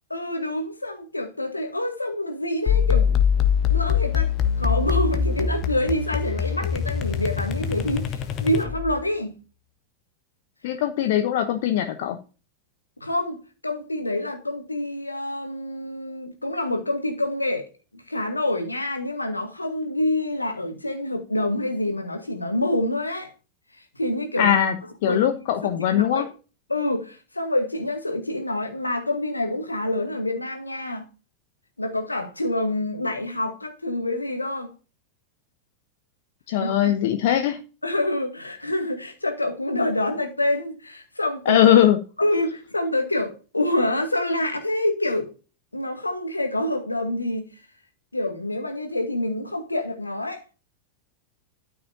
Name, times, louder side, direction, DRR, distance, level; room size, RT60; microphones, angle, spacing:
voice 1, 0.1-4.3 4.6-9.4 13.0-17.7 17.9-23.3 23.9-24.6 25.0-25.4 25.8-26.3 26.7-31.1 31.8-34.7 36.6-36.9 37.8-41.6 42.2-45.3 45.7-47.5 48.1-50.4, left 1 dB, 85° left, 2.0 m, -27 dB
sound 1, 2.7-9.0, left 7 dB, 35° left, 1.3 m, -23 dB
voice 2, 10.6-12.2 24.4-24.7 25.0-26.2 36.5-37.6 41.5-42.0, left 11 dB, 50° left, 0.9 m, -20 dB
13.0 x 5.8 x 2.7 m
figure-of-eight pair, 90°, 0 cm